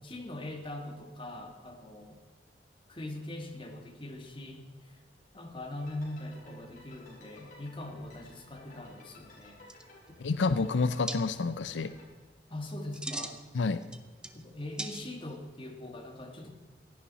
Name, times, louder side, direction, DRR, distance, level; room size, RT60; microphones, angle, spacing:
voice 1, 0.0-2.2 2.9-5.0 5.3-9.6 12.5-13.4 14.3-16.5, left 1 dB, 30° left, 3 dB, 1.9 m, -41 dB
sound 1, 5.8-12.0, left 2 dB, 45° left, 4.4 m, -55 dB
sound 2, 9.4-9.5 9.7-10.2 11.1-11.2 12.7-13.4 13.8-14.4 14.8-15.4, right 1 dB, 5° right, 0.8 m, -39 dB
voice 2, 10.2-11.9 13.5-13.8, left 4 dB, 90° left, 13 dB, 0.6 m, -29 dB
16.5 x 11.0 x 4.2 m, 1.5 s
head